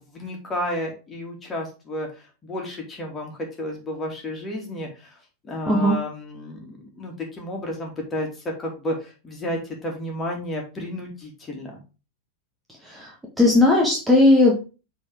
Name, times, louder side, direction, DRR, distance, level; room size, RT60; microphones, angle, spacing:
voice 1, 0.0-5.2 5.4-8.3 8.6-11.8, left 1 dB, 20° left, 1 dB, 2.9 m, -32 dB
voice 2, 12.8-14.7, left 2 dB, 10° right, -2 dB, 1.8 m, -18 dB
7.3 x 4.1 x 4.9 m, 0.32 s
figure-of-eight pair, 90°, 0 cm